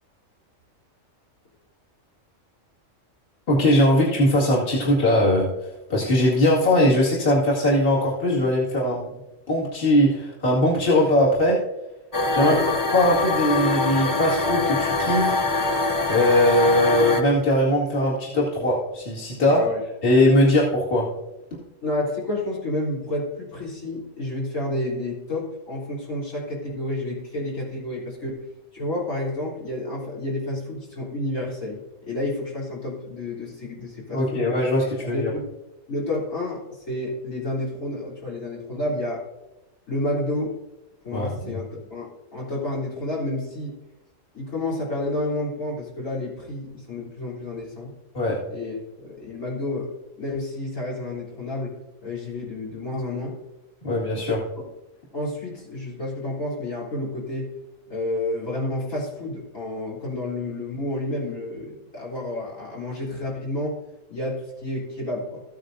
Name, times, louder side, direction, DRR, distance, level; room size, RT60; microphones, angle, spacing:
voice 1, 3.5-5.5 5.9-9.1 9.5-11.6 12.3-12.6 12.9-15.3 16.1-19.6 20.0-21.1 34.1-35.3 41.1-41.5 48.1-48.4 53.8-54.4, left 1 dB, 45° left, -6 dB, 2.4 m, -20 dB
sound 1, 12.1-17.2, left 3 dB, 25° left, 0.4 m, -24 dB
voice 2, 12.4-12.7 19.5-19.8 21.8-28.4 28.7-34.5 35.0-35.5 35.9-39.2 39.9-40.5 41.0-43.7 44.3-47.9 48.5-49.9 50.2-51.7 52.0-53.3 55.1-57.5 57.9-63.7 64.1-65.4, left 1 dB, 80° left, -6 dB, 4.0 m, -30 dB
14.5 x 9.0 x 2.7 m, 0.96 s
omnidirectional pair, 1.3 m